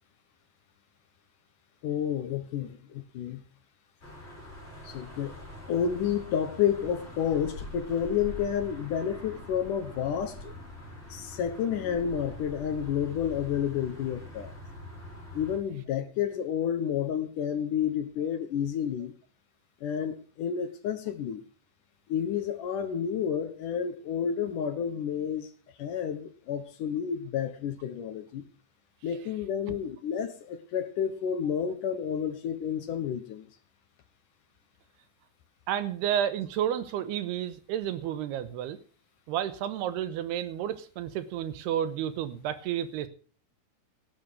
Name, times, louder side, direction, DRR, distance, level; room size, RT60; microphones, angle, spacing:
voice 1, 1.8-3.4 4.8-5.4 5.7-10.5 11.1-14.5 15.3-19.1 19.8-21.4 22.1-25.5 25.8-28.4 29.0-33.4, left 8 dB, 65° left, 9 dB, 2.4 m, -30 dB
sound 1, 4.0-15.6, left 1 dB, 15° left, 5.6 m, -44 dB
voice 2, 35.7-38.8 39.3-43.1, right 10 dB, 90° right, 12 dB, 3.1 m, -31 dB
18.0 x 7.5 x 6.3 m, 0.41 s
omnidirectional pair, 4.6 m